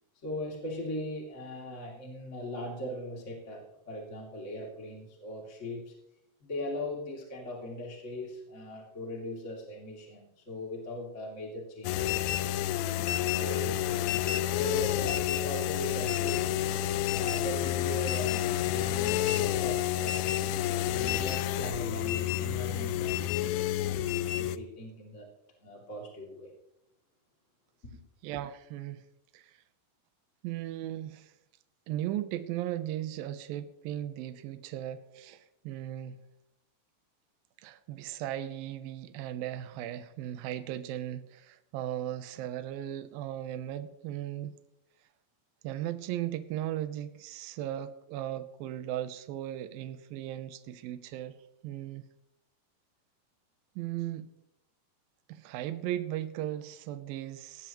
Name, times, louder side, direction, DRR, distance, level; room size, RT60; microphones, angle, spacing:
voice 1, 0.2-5.9 6.4-12.3 12.9-16.4 17.1-20.4 20.8-25.3 25.6-26.5, equal, 20° left, -2 dB, 2.2 m, -40 dB
sound 1, 11.8-24.6, left 13 dB, 90° left, 3.0 m, -29 dB
voice 2, 28.2-29.0 29.3-29.6 30.4-31.3 31.9-36.2 37.6-44.5 45.6-51.4 51.6-52.0 53.8-54.3 55.3-57.7, right 12 dB, 85° right, 10 dB, 2.0 m, -37 dB
19.0 x 17.5 x 3.1 m, 0.83 s
omnidirectional pair, 5.2 m